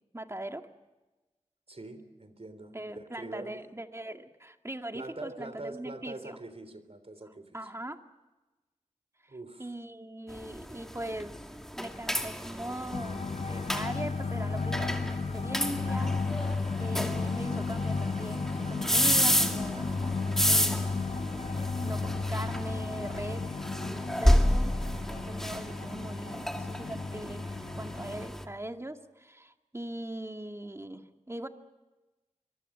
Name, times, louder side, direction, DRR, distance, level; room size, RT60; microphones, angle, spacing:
voice 1, 0.1-0.6 2.7-6.4 7.5-8.0 9.2-9.3 9.6-11.3 11.8-20.9 21.5-23.5 23.8-24.8 25.1-27.4 27.8-31.5, right 1 dB, 20° right, 6 dB, 2.0 m, -40 dB
voice 2, 1.7-3.7 4.9-7.6 9.3-9.7, right 2 dB, 55° right, 11 dB, 3.5 m, -43 dB
sound 1, 10.3-28.4, equal, 5° left, 2.4 m, -31 dB
sound 2, 12.9-28.3, left 4 dB, 80° left, 1.3 m, -34 dB
25.0 x 23.0 x 7.5 m, 1.1 s
wide cardioid pair, 55°, 12 cm